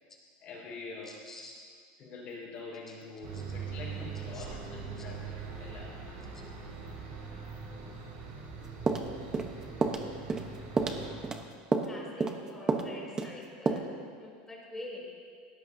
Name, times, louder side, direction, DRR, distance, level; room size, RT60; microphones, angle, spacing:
voice 1, 0.4-1.2 2.0-6.0, left 3 dB, 40° left, -3 dB, 4.8 m, -45 dB
voice 2, 1.0-1.6 2.9-3.0 3.3-3.4 4.3-4.5 9.7-9.9 11.8-13.9 14.2-15.0, left 1 dB, 10° left, -3 dB, 3.2 m, -46 dB
sound 1, 3.2-11.3, right 5 dB, 60° right, 4.5 m, -42 dB
sound 2, 8.9-9.5 9.8-10.0 10.3-10.5 10.8-11.4 11.7-11.9 12.2-12.4 12.7-12.9 13.2-13.3 13.7-13.8, right 4 dB, 15° right, 1.0 m, -29 dB
20.5 x 17.5 x 2.8 m, 2.1 s
supercardioid pair, 155°, 4 cm